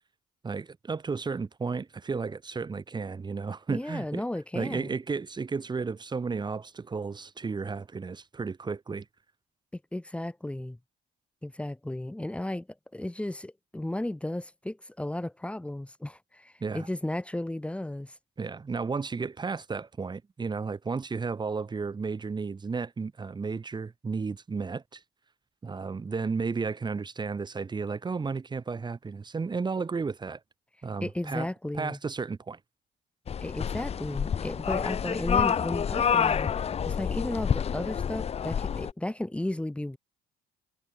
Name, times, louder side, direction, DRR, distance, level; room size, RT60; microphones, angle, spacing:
voice 1, 0.4-4.2 4.5-9.0 16.6-16.9 18.4-25.0 25.6-30.4 30.8-31.5 31.7-32.6, right 4 dB, 25° right, 3.3 m, -33 dB
voice 2, 3.7-5.0 9.7-10.8 11.4-12.7 12.9-18.2 31.0-32.0 33.4-40.0, left 1 dB, 5° left, 3.1 m, -34 dB
sound 1, 33.3-38.9, left 7 dB, 40° left, 1.2 m, -28 dB
cardioid pair, 110°, 17 cm